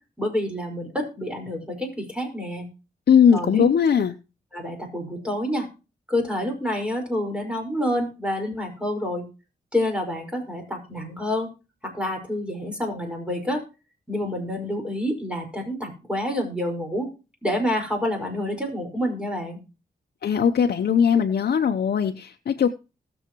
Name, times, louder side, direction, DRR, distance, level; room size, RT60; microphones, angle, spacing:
voice 1, 0.2-2.7 3.3-3.7 4.5-5.7 6.1-9.3 9.7-11.5 11.8-13.6 14.1-17.1 17.4-19.6, left 1 dB, 5° right, 3 dB, 5.1 m, -28 dB
voice 2, 3.1-4.1 20.2-22.7, left 7 dB, 70° left, 4 dB, 0.8 m, -19 dB
20.0 x 7.1 x 3.1 m, 0.31 s
cardioid pair, 70°, 17 cm